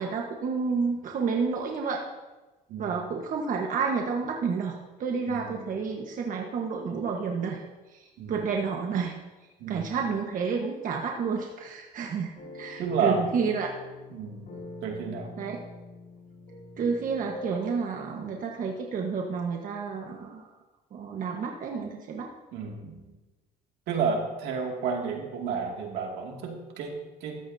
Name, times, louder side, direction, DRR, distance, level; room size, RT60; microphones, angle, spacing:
voice 1, 0.0-2.0 2.8-7.6 7.9-9.1 9.7-13.7 15.4-15.6 16.8-20.4 20.9-22.3, right 5 dB, 50° right, 1 dB, 1.3 m, -30 dB
voice 2, 2.7-3.0 5.3-5.7 8.2-8.4 9.6-10.0 12.8-13.2 14.1-14.5 14.8-15.3 22.5-23.1 23.9-27.4, right 5 dB, 85° right, 0 dB, 2.4 m, -31 dB
sound 1, 12.4-17.8, left 1 dB, 50° left, 4.5 m, -43 dB
14.5 x 12.5 x 2.8 m, 1.2 s
cardioid pair, 110°, 17 cm